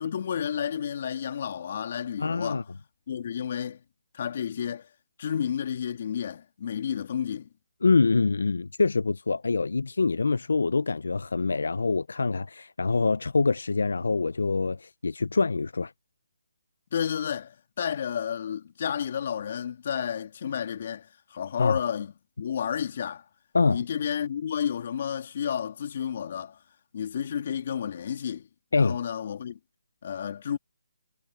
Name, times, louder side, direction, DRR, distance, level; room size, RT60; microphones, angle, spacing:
voice 1, 0.0-2.6 3.1-3.8 4.1-4.9 5.2-7.5 16.9-22.1 22.4-23.2 23.7-26.6 26.9-29.6 30.0-30.6, left 8 dB, 45° left, 2.9 m, -31 dB
voice 2, 2.2-2.6 7.8-15.9 21.6-21.8 23.5-23.8 28.7-29.0, left 4 dB, 80° left, 0.5 m, -25 dB
hypercardioid pair, 165°, 0 cm